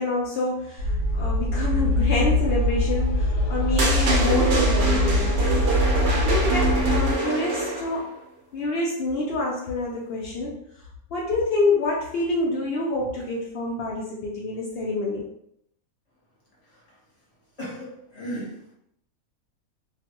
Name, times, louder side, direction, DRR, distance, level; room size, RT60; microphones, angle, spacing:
voice 1, 0.0-8.1 8.5-10.6 11.1-15.2, left 2 dB, 70° left, -4 dB, 0.5 m, -27 dB
sound 1, 0.8-7.1, left 1 dB, 90° left, 1.1 m, -23 dB
sound 2, 3.8-8.0, right 3 dB, 60° right, 0.7 m, -25 dB
voice 2, 17.6-18.7, right 1 dB, 30° left, -6 dB, 1.0 m, -35 dB
2.5 x 2.3 x 2.8 m, 0.75 s
omnidirectional pair, 1.5 m